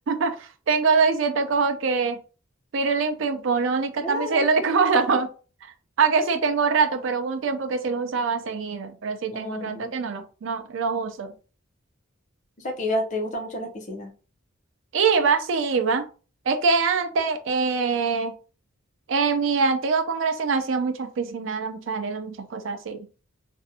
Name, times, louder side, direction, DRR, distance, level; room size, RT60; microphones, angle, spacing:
voice 1, 0.1-2.2 2.7-5.3 6.0-11.3 14.9-16.0 16.5-18.4 19.1-23.1, right 4 dB, 65° right, 7 dB, 0.4 m, -24 dB
voice 2, 4.0-4.4 9.3-9.9 12.6-14.1, left 1 dB, 35° left, 2 dB, 0.6 m, -30 dB
2.5 x 2.1 x 2.6 m, 0.36 s
head